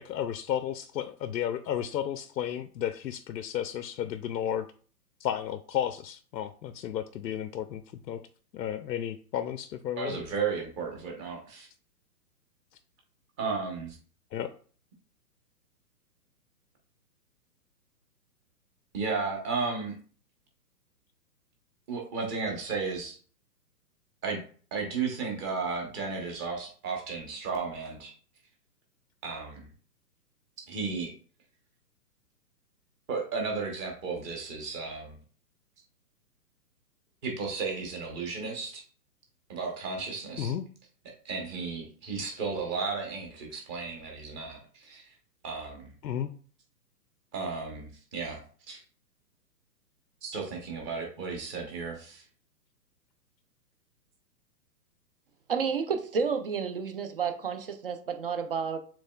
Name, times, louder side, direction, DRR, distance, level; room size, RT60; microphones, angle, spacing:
voice 1, 0.0-4.7 5.2-7.8 8.1-8.2 8.5-10.2 14.3-14.5 40.4-40.7 46.0-46.3, left 10 dB, 90° left, 10 dB, 0.6 m, -33 dB
voice 2, 10.0-11.7 13.4-13.9 18.9-19.9 21.9-23.1 24.2-24.4 24.7-28.1 29.2-29.6 30.7-31.1 33.1-35.1 37.2-38.8 39.5-40.5 41.3-44.6 44.9-45.0 45.4-45.8 47.3-47.8 48.1-48.4 48.7-48.8 50.2-52.2, right 4 dB, 15° right, 1 dB, 0.9 m, -33 dB
voice 3, 55.5-58.8, right 6 dB, 35° right, 8 dB, 0.5 m, -30 dB
6.9 x 3.2 x 2.2 m, 0.43 s
hypercardioid pair, 150°, 50 cm